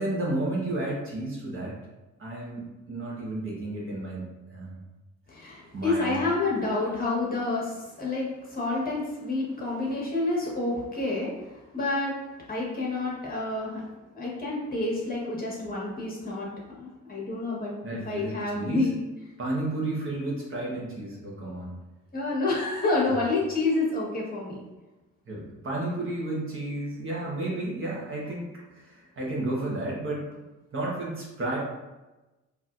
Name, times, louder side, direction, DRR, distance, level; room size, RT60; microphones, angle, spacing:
voice 1, 0.0-1.8 2.2-4.8 5.7-6.2 17.8-18.8 19.4-21.7 25.3-30.3 30.7-31.6, right 2 dB, 45° right, -4 dB, 1.2 m, -32 dB
voice 2, 5.3-12.1 12.5-13.8 14.1-16.5 16.8-17.7 18.0-19.0 22.1-24.6, left 2 dB, 30° left, -4 dB, 1.3 m, -28 dB
4.2 x 2.9 x 2.5 m, 1.1 s
cardioid pair, 90°, 30 cm